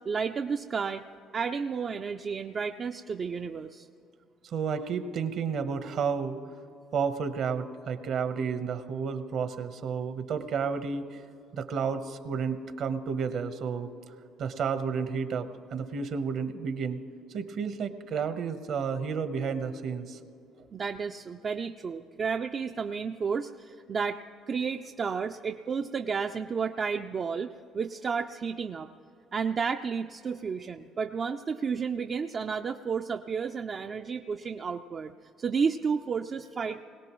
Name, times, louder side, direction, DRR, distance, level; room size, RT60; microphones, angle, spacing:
voice 1, 0.1-1.0 1.3-3.9 20.7-28.9 29.3-35.1 35.4-36.8, right 5 dB, 40° right, 5 dB, 0.4 m, -32 dB
voice 2, 4.4-6.4 6.9-11.2 11.5-13.9 14.4-17.0 17.3-20.2, right 6 dB, 60° right, 10 dB, 1.0 m, -31 dB
21.0 x 17.5 x 3.1 m, 2.8 s
supercardioid pair, 95°, 0 cm